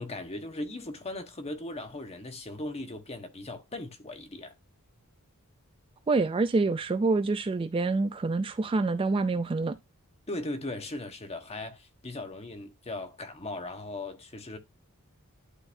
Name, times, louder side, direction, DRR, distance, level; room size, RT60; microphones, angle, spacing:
voice 1, 0.0-4.5 10.3-14.6, left 2 dB, 30° left, 1.2 m, -38 dB
voice 2, 6.1-9.8, right 3 dB, 25° right, 0.3 m, -26 dB
11.5 x 3.9 x 2.6 m
head